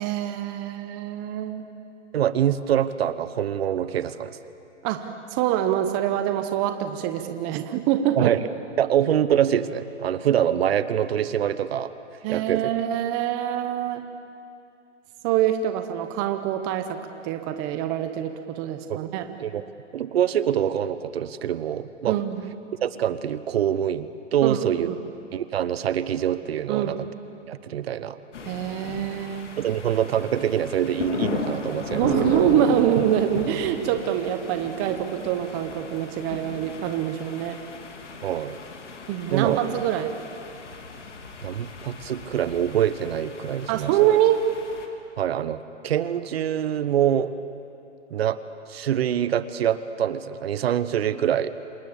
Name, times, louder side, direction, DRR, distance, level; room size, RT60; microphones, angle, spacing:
voice 1, 0.0-1.7 4.8-8.3 12.2-14.0 15.2-19.3 22.1-22.5 24.4-24.6 24.9-25.0 26.7-27.1 28.5-29.5 31.9-37.6 39.1-40.1 43.7-44.4, right 11 dB, 20° right, 8 dB, 0.8 m, -25 dB
voice 2, 2.1-4.4 8.1-8.4 8.8-11.9 12.3-12.7 18.9-19.1 19.4-19.6 19.9-22.2 22.8-24.9 25.3-27.1 27.5-28.2 29.6-32.3 38.2-38.6 39.3-39.6 41.4-43.9 45.2-47.3 48.1-48.4 48.7-51.5, right 10 dB, 55° right, 14 dB, 1.1 m, -25 dB
sound 1, 28.3-44.9, left 4 dB, 70° left, 3.2 m, -36 dB
27.0 x 20.0 x 8.8 m, 2.7 s
hypercardioid pair, 150°, 37 cm